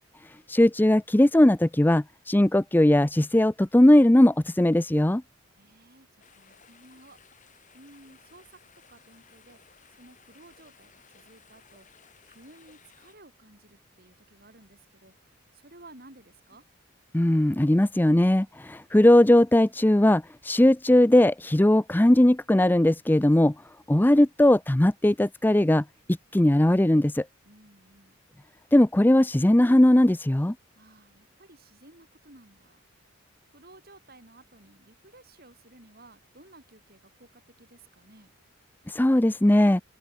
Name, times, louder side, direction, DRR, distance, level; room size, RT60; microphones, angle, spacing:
voice 1, 0.5-5.2 17.1-23.5 23.9-25.8 26.3-27.3 28.7-30.5 38.9-39.8, left 1 dB, 10° left, 0.4 m, -19 dB
voice 2, 5.5-9.6 9.9-11.9 12.3-16.7 27.4-28.2 30.7-32.9 33.5-38.3, right 2 dB, 45° right, 6.7 m, -55 dB
sound 1, 6.2-13.1, left 6 dB, 35° left, 8.0 m, -58 dB
open air
head